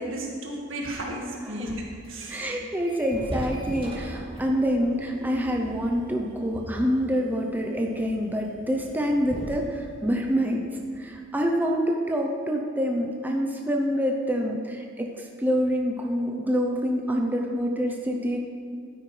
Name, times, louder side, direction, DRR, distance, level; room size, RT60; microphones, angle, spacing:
voice 1, 0.0-2.6, right 1 dB, 75° right, -1 dB, 1.9 m, -34 dB
sound 1, 2.0-2.6 2.9-11.3, equal, 25° right, 2.2 m, -40 dB
voice 2, 2.3-10.7 11.0-18.4, equal, 10° right, 0 dB, 0.6 m, -26 dB
12.5 x 9.5 x 3.3 m, 2.2 s
head